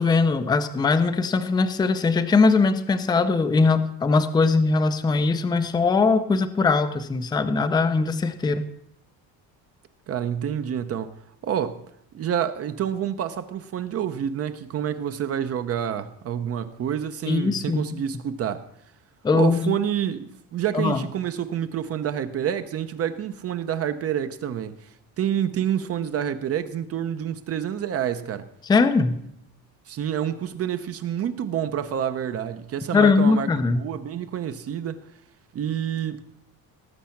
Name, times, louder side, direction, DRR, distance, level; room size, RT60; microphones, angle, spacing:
voice 1, 0.0-8.6 17.3-18.0 19.2-19.8 20.7-21.0 28.6-29.2 32.9-33.8, left 4 dB, 10° left, 0.5 m, -21 dB
voice 2, 10.1-11.1 11.4-11.8 12.1-18.7 19.3-24.9 25.2-28.5 29.9-33.5 33.8-35.0 35.5-36.2, right 9 dB, 40° right, 0.7 m, -28 dB
18.5 x 7.5 x 5.8 m
cardioid pair, 165°, 38 cm